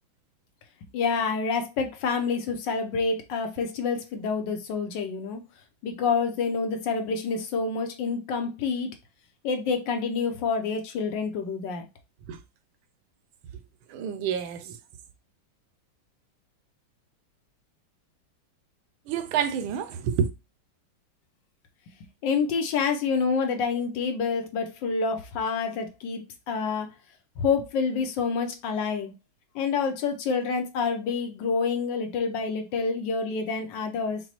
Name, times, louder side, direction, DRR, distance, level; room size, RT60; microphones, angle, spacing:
voice 1, 0.9-5.4 5.8-8.9 9.4-11.9 22.2-26.9 27.4-29.1 29.5-34.2, left 5 dB, 75° left, 1.2 m, -27 dB
voice 2, 13.9-14.8 19.1-20.3, right 8 dB, 80° right, 1.4 m, -28 dB
5.9 x 2.0 x 2.9 m
omnidirectional pair, 2.2 m